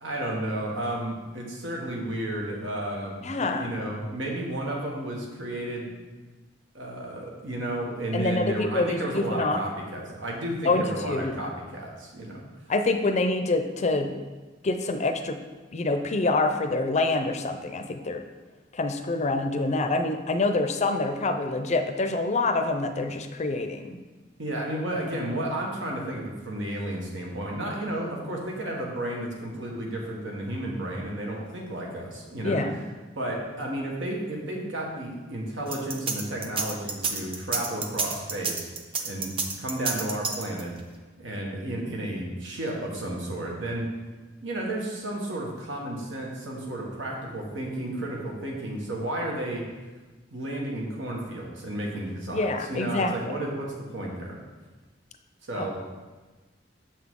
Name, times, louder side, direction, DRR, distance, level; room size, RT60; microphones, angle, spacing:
voice 1, 0.0-5.9 6.7-12.4 24.4-32.6 33.2-38.7 39.0-39.3 39.6-40.7 41.2-43.9 44.4-49.7 50.3-54.4 55.5-55.7, right 1 dB, 90° right, -1 dB, 1.5 m, -32 dB
voice 2, 3.2-3.7 8.1-9.6 10.6-11.5 12.7-14.1 14.6-15.4 15.7-18.2 18.7-24.0 32.4-32.8 52.3-53.3 55.5-55.7, left 2 dB, 40° left, 7 dB, 0.5 m, -26 dB
sound 1, 35.7-40.8, right 4 dB, 30° right, 0.6 m, -29 dB
6.5 x 5.9 x 3.7 m, 1.3 s
head